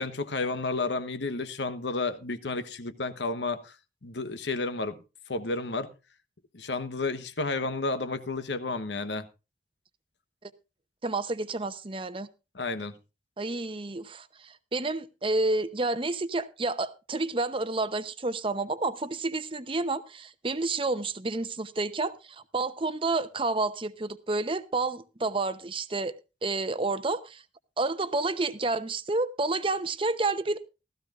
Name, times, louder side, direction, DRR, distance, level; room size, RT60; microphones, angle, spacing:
voice 1, 0.0-3.7 4.0-5.0 5.3-5.9 6.5-9.3 12.5-12.9, left 3 dB, 80° left, 1.1 m, -31 dB
voice 2, 11.0-12.3 13.4-26.1 26.4-27.4 27.8-30.6, right 3 dB, 30° right, 0.8 m, -30 dB
16.0 x 14.0 x 2.5 m
head